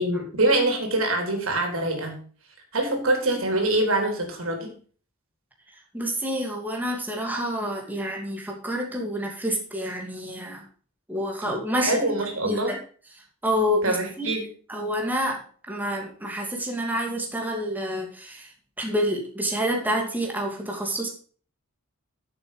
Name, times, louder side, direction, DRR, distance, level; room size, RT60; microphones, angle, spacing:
voice 1, 0.0-2.2 2.7-4.7 11.4-11.6 11.8-12.8 13.8-14.5, right 2 dB, 75° right, 3 dB, 3.7 m, -24 dB
voice 2, 5.9-10.6 11.1-12.0 12.4-12.8 13.4-14.3 14.7-15.4 15.7-18.5 18.8-21.1, equal, 10° right, 0 dB, 2.6 m, -28 dB
11.0 x 7.8 x 5.1 m, 0.42 s
head